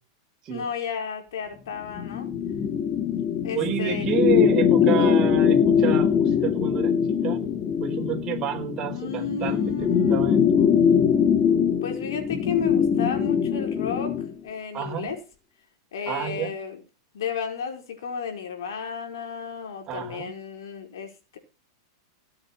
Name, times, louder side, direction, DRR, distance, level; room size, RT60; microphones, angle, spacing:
voice 1, 0.5-2.3 3.4-4.0 4.8-5.3 8.9-10.4 11.8-14.2 14.4-15.2 15.9-16.8 17.1-21.4, left 7 dB, 80° left, 4.6 m, -33 dB
sound 1, 1.9-14.3, left 7 dB, 30° left, 2.0 m, -22 dB
voice 2, 3.5-7.4 7.8-10.9 14.7-15.2 16.1-16.5 19.9-20.3, right 10 dB, 30° right, 4.8 m, -30 dB
17.5 x 7.9 x 5.9 m
supercardioid pair, 140°, 2 cm